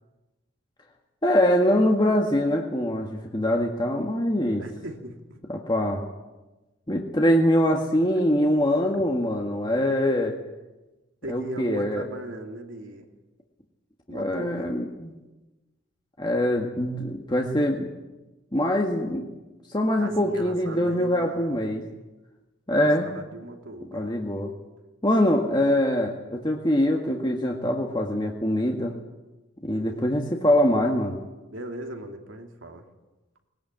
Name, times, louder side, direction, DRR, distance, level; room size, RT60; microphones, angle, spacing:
voice 1, 1.2-4.6 5.5-6.0 6.9-10.4 11.3-12.1 14.1-15.1 16.2-17.9 18.5-19.3 19.7-21.9 22.7-23.2 23.9-24.5 25.0-28.9 29.6-31.2, left 1 dB, 25° left, 1 dB, 1.7 m, -23 dB
voice 2, 4.6-5.4 11.2-13.1 14.1-14.7 20.0-21.5 23.0-24.2 29.8-30.1 31.5-32.8, right 2 dB, 90° right, 3 dB, 2.8 m, -38 dB
20.5 x 19.0 x 9.0 m, 1.1 s
head